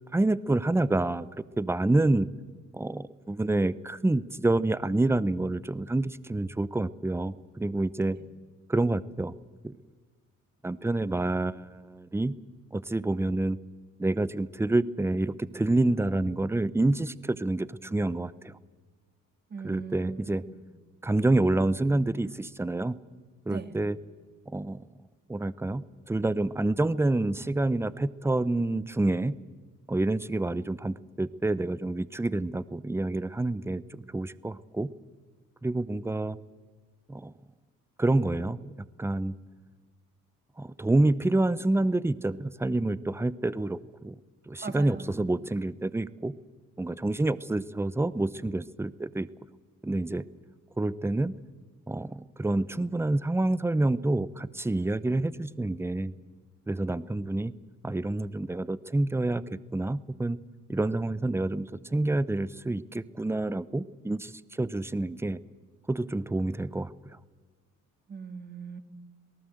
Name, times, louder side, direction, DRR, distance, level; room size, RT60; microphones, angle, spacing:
voice 1, 0.1-1.3 1.6-2.3 2.7-8.2 8.7-9.3 9.6-9.7 10.6-12.3 12.7-13.6 14.0-18.5 19.6-20.4 21.0-23.0 23.5-24.0 24.5-24.9 25.3-25.8 26.1-29.3 29.9-34.9 35.6-36.4 37.1-37.3 38.0-38.7 39.0-39.4 40.6-44.2 44.5-46.3 46.8-49.3 49.8-50.2 50.8-51.4 51.9-56.1 56.7-57.5 57.8-60.4 60.7-65.4 65.9-66.9, right 2 dB, 10° right, 17 dB, 0.7 m, -28 dB
voice 2, 19.5-20.6 23.5-23.8 44.6-45.2 68.1-68.8, right 5 dB, 30° right, 8 dB, 2.2 m, -39 dB
27.5 x 18.5 x 7.8 m, 1.5 s
cardioid pair, 90°, 32 cm